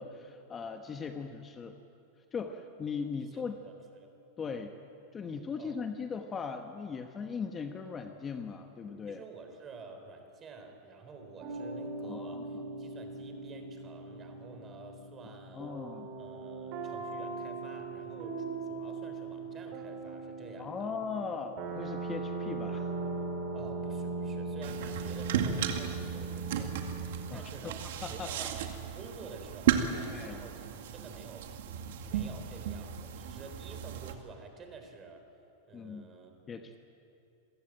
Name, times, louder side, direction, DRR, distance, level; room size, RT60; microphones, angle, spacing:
voice 1, 0.0-1.8 2.3-3.5 4.4-4.7 5.1-9.2 12.0-12.4 15.5-16.1 20.6-22.9 27.3-27.7 28.0-28.5 30.1-30.4 35.7-36.1 36.5-36.7, left 5 dB, 20° left, 6 dB, 1.2 m, -39 dB
voice 2, 3.2-3.7 4.0-4.1 5.6-5.8 9.1-15.8 16.2-20.9 23.5-31.5 32.0-35.3 35.7-36.3, right 4 dB, 25° right, 5 dB, 3.8 m, -50 dB
sound 1, 11.4-27.3, right 3 dB, 50° right, 6.6 m, -39 dB
sound 2, 24.6-34.1, right 9 dB, 70° right, 2.1 m, -35 dB
27.5 x 15.5 x 9.0 m, 2.7 s
supercardioid pair, 130°, 0 cm